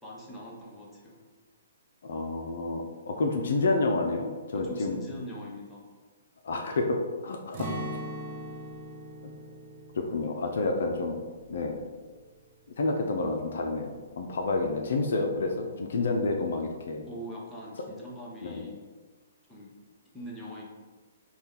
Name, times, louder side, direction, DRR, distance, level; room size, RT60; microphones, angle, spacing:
voice 1, 0.0-1.2 4.5-5.9 17.0-18.9 19.5-19.7 20.1-20.6, equal, 5° left, -5 dB, 0.8 m, -42 dB
voice 2, 2.0-5.0 6.4-7.7 9.2-9.3 9.9-11.2 11.5-11.8 12.8-17.0 18.4-18.6, left 3 dB, 60° left, 2 dB, 0.4 m, -29 dB
Acoustic guitar, 7.5-13.4 13.7-13.9 14.4-14.9, right 1 dB, 40° right, 0.6 m, -42 dB
4.1 x 2.3 x 3.5 m, 1.4 s
figure-of-eight pair, 125°, 0 cm